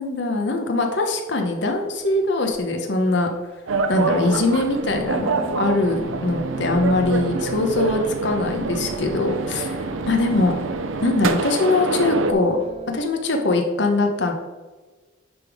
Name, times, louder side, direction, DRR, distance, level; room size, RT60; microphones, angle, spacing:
voice 1, 0.0-3.3 3.9-9.8 10.1-10.6 11.0-12.6 12.9-14.3, left 2 dB, 65° left, 3 dB, 0.9 m, -22 dB
sound 1, 2.5-2.6 4.4-5.1 5.4-10.9 11.7-13.1, right 3 dB, 30° right, 0.4 m, -38 dB
sound 2, 3.7-12.3, right 3 dB, 90° right, 0.6 m, -26 dB
9.5 x 3.6 x 4.8 m, 1.3 s
head